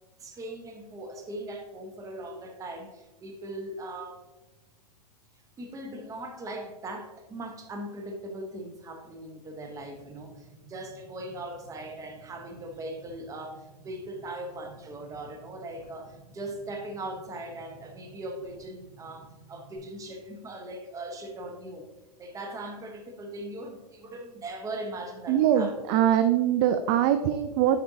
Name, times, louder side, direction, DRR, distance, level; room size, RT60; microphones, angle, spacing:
voice 1, 0.2-4.2 5.6-21.9 22.2-25.7, right 1 dB, 15° right, 4 dB, 0.9 m, -39 dB
sound 1, 9.8-19.8, right 2 dB, 10° left, 2.0 m, -54 dB
voice 2, 25.3-27.8, right 10 dB, 35° right, 9 dB, 0.4 m, -23 dB
10.0 x 4.2 x 2.7 m, 1.1 s
hypercardioid pair, 135°, 20 cm